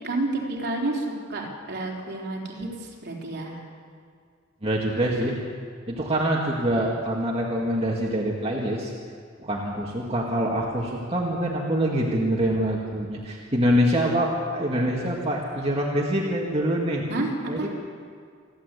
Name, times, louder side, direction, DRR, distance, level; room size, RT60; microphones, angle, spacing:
voice 1, 0.0-3.6 17.1-17.7, right 2 dB, 55° right, 0 dB, 3.7 m, -30 dB
voice 2, 4.6-5.4 5.9-8.9 9.4-17.0 17.5-17.7, equal, 30° right, -2 dB, 2.1 m, -25 dB
28.0 x 11.5 x 8.3 m, 2.1 s
head